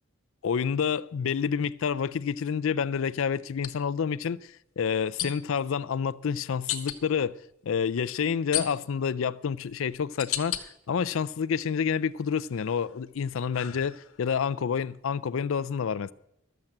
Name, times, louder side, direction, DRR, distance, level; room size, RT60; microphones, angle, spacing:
voice 1, 0.4-7.4 7.7-16.1, left 6 dB, 65° left, 0.4 m, -28 dB
sound 1, 0.7-0.9 3.5-3.7 5.2-5.6 6.7-7.0 8.5-9.1 9.7-10.6 11.2-11.8 12.3-14.3, left 11 dB, 80° left, 1.2 m, -35 dB
13.0 x 7.3 x 7.7 m
head